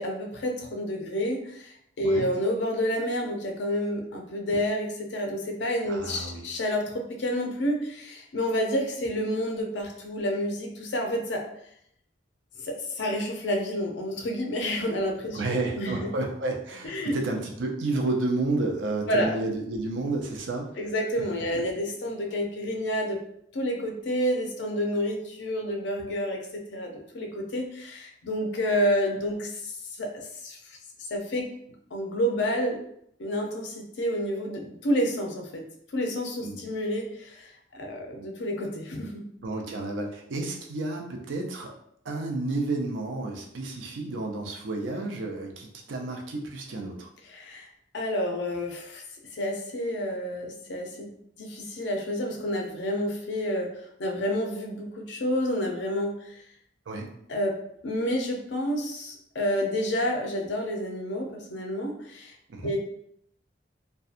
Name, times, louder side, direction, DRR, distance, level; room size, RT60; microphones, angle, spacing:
voice 1, 0.0-11.4 12.6-15.4 15.8-15.9 16.8-17.2 19.1-19.3 20.8-23.2 23.5-31.5 31.9-32.8 33.2-35.7 35.9-39.2 47.3-47.7 47.9-49.0 49.3-51.1 51.4-53.7 54.0-56.4 57.3-57.6 57.8-62.4 62.6-62.8, equal, 70° left, 2 dB, 0.5 m, -29 dB
voice 2, 5.9-6.5 15.3-20.7 21.5-21.6 36.4-36.6 39.4-41.7 42.0-47.1 56.9-57.1 62.5-62.7, right 2 dB, 85° right, 1 dB, 0.5 m, -31 dB
2.6 x 2.2 x 2.4 m, 0.72 s
head